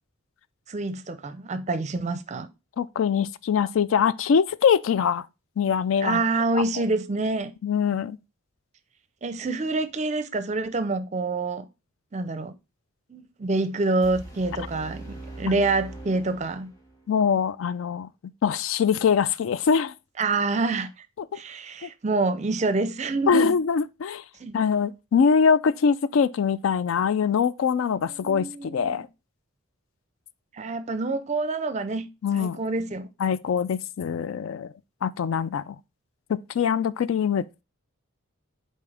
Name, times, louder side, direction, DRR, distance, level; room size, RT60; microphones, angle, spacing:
voice 1, 0.7-2.5 6.0-7.5 9.2-11.7 12.1-12.5 13.1-16.7 20.2-20.9 21.3-23.6 24.4-24.6 28.2-29.0 30.5-32.1 32.3-33.1, right 3 dB, 30° right, 0.5 m, -27 dB
voice 2, 2.8-5.3 5.6-6.2 6.5-6.6 7.6-8.2 15.5-15.6 17.1-18.1 18.4-19.9 21.8-21.9 23.3-24.2 24.5-29.1 32.2-32.6 33.2-34.7 35.0-35.8 36.3-37.5, left 6 dB, 70° left, 0.3 m, -23 dB
sound 1, 14.0-17.0, right 2 dB, 15° left, 1.7 m, -41 dB
7.1 x 4.2 x 3.3 m
head